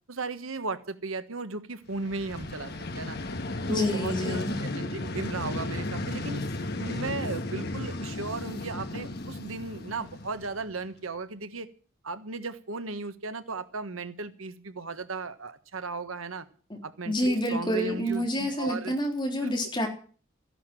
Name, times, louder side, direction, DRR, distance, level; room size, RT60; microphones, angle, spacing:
voice 1, 0.1-3.2 3.7-6.4 6.8-11.7 12.0-16.5 16.8-18.9 19.4-19.8, right 3 dB, 90° right, 10 dB, 1.4 m, -36 dB
Vehicle, 1.9-10.9, left 2 dB, 50° left, 1.5 m, -34 dB
voice 2, 3.7-4.6 16.7-16.8 17.1-19.9, equal, 25° left, 1 dB, 3.7 m, -28 dB
15.0 x 11.0 x 7.7 m, 0.42 s
head